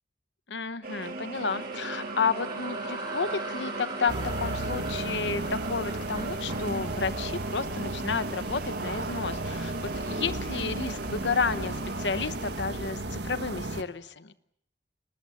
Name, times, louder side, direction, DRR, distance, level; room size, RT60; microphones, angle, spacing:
voice 1, 0.5-14.3, left 5 dB, 80° left, 13 dB, 1.0 m, -31 dB
sound 1, 0.8-12.6, right 3 dB, 55° right, 2.5 m, -39 dB
sound 2, 1.0-8.2, right 2 dB, 25° right, 6.1 m, -41 dB
sound 3, 4.1-13.8, right 2 dB, 70° right, 1.6 m, -34 dB
28.5 x 20.0 x 7.7 m, 0.76 s
head